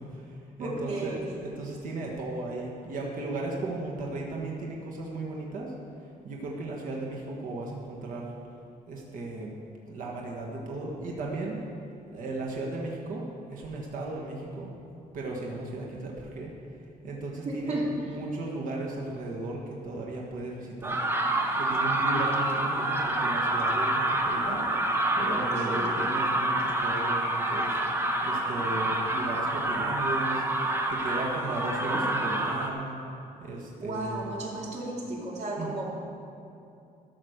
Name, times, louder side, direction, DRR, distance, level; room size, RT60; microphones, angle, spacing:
voice 1, 0.0-1.1 1.4-5.7 6.2-8.3 8.9-9.5 9.9-11.6 12.1-14.7 15.1-16.5 17.0-21.0 21.6-24.7 25.2-27.8 28.2-30.4 30.9-33.0 33.4-34.2 35.6-35.7, right 2 dB, 65° right, -2 dB, 1.6 m, -36 dB
voice 2, 0.6-1.4 17.4-18.2 25.5-25.9 33.8-35.9, right 2 dB, 45° right, -3 dB, 2.4 m, -33 dB
sound 1, 20.8-32.7, right 1 dB, 15° right, 0.9 m, -27 dB
13.5 x 6.5 x 6.6 m, 2.7 s
cardioid pair, 165°, 15 cm